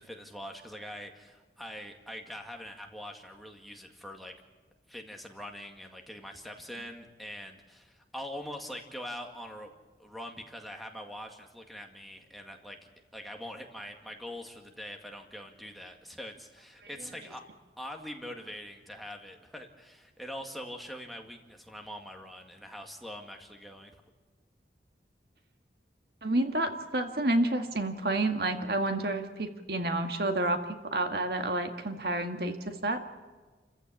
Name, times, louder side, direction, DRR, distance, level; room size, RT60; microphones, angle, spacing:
voice 1, 0.0-4.3 4.9-9.7 10.0-12.8 13.1-17.4 17.8-24.0, equal, ahead, 2 dB, 2.0 m, -43 dB
voice 2, 26.2-33.0, right 2 dB, 60° right, 6 dB, 1.9 m, -29 dB
29.0 x 15.0 x 8.6 m, 1.3 s
head